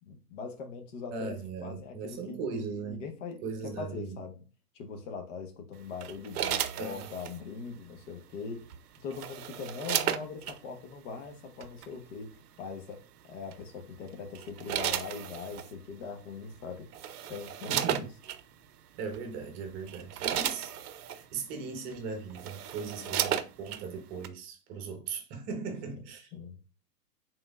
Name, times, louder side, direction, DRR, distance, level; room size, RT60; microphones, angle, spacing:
voice 1, 0.0-4.5 4.7-8.7 9.0-16.9 17.3-18.2 23.0-23.3 25.9-26.6, left 5 dB, 50° left, 1.1 m, -42 dB
voice 2, 1.1-3.0 3.4-4.2 6.7-7.1 17.7-18.1 18.9-20.7 21.0-26.3, right 5 dB, 30° right, 1.0 m, -38 dB
sound 1, 6.0-7.4 8.7-10.6 11.6-11.9 13.5-13.8 14.3-15.7 16.5-16.6 16.9-18.4 19.1-19.3 19.7-21.2 21.9-22.0 22.3-23.8 24.2-24.3, right 10 dB, 70° right, 0.6 m, -33 dB
5.1 x 3.7 x 2.4 m
hypercardioid pair, 115°, 47 cm